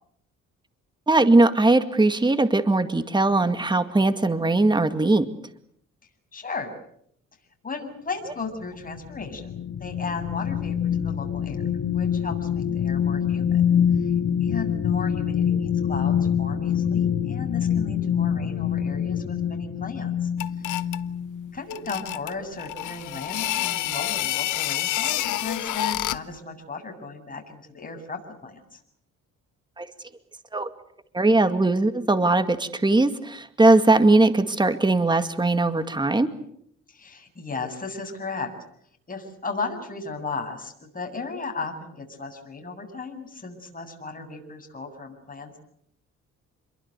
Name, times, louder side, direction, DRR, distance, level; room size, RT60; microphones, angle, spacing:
voice 1, 1.1-5.3 29.8-29.9 30.5-30.7 31.1-36.3, right 2 dB, 15° right, 9 dB, 2.2 m, -20 dB
voice 2, 6.3-6.7 7.6-11.6 11.9-13.6 13.9-14.1 14.4-20.3 20.6-20.8 21.5-28.8 36.9-38.5 39.1-45.6, left 4 dB, 30° left, 3 dB, 7.8 m, -35 dB
sound 1, 8.6-21.5 22.0-22.2, left 8 dB, 50° left, 1.8 m, -25 dB
sound 2, 20.4-21.1 21.7-26.3, left 14 dB, 80° left, 1.1 m, -28 dB
28.5 x 23.0 x 8.1 m, 0.70 s
cardioid pair, 90°, 30 cm